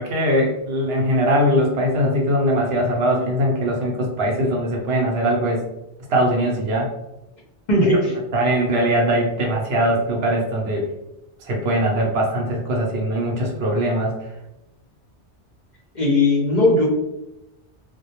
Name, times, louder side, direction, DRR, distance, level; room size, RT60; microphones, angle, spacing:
voice 1, 0.0-5.6 6.1-6.9 8.3-10.9 11.4-14.2, equal, 65° right, -1 dB, 0.7 m, -21 dB
voice 2, 7.7-8.1 15.9-16.9, left 2 dB, 50° left, -4 dB, 0.6 m, -17 dB
2.1 x 2.1 x 2.8 m, 0.91 s
omnidirectional pair, 1.2 m